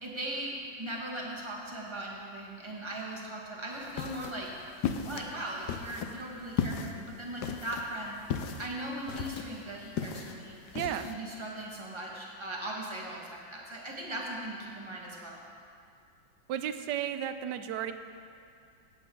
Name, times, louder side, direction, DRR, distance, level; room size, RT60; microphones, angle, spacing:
voice 1, 0.0-4.7 5.0-8.2 8.6-15.4, right 1 dB, 15° right, -3 dB, 1.4 m, -39 dB
sound 1, 3.7-11.1, left 7 dB, 70° left, 1.1 m, -37 dB
voice 2, 10.7-11.1 16.5-17.9, right 10 dB, 75° right, 10 dB, 1.1 m, -33 dB
16.0 x 8.1 x 3.8 m, 2.4 s
omnidirectional pair, 2.0 m